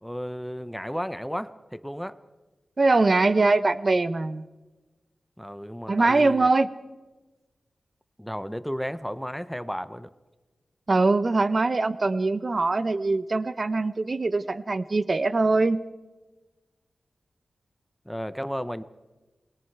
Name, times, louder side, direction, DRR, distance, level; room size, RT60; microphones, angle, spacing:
voice 1, 0.0-2.2 5.4-6.5 8.2-10.1 18.1-18.8, equal, ahead, 14 dB, 0.7 m, -33 dB
voice 2, 2.8-4.4 5.9-6.7 10.9-15.8, right 3 dB, 40° right, 15 dB, 0.7 m, -22 dB
29.0 x 20.5 x 4.7 m, 1.1 s
wide cardioid pair, 105°, 0 cm